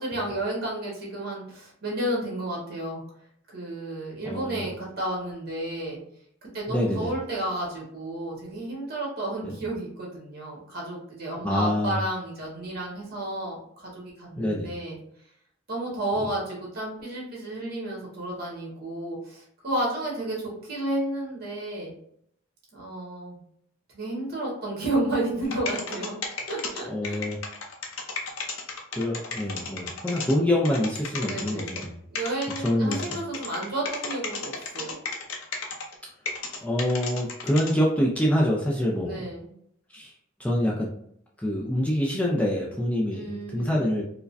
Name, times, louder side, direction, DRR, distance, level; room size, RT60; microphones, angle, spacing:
voice 1, 0.0-3.0 3.5-6.0 6.5-15.0 15.7-21.9 22.7-23.4 23.9-26.1 26.5-27.3 31.2-31.8 32.1-35.0 39.0-39.5 43.1-43.9, right 1 dB, 50° right, -3 dB, 1.5 m, -32 dB
voice 2, 4.2-4.6 6.7-7.1 11.4-12.0 14.4-14.7 26.9-27.4 29.0-31.9 32.6-33.0 36.6-39.2 39.9-40.1 40.4-40.9 41.4-44.0, left 1 dB, 5° left, -3 dB, 0.4 m, -25 dB
sound 1, 25.4-30.3 30.6-31.9 32.2-35.9 36.3-37.7, left 4 dB, 90° left, 0.7 m, -33 dB
4.7 x 2.1 x 2.6 m, 0.68 s
head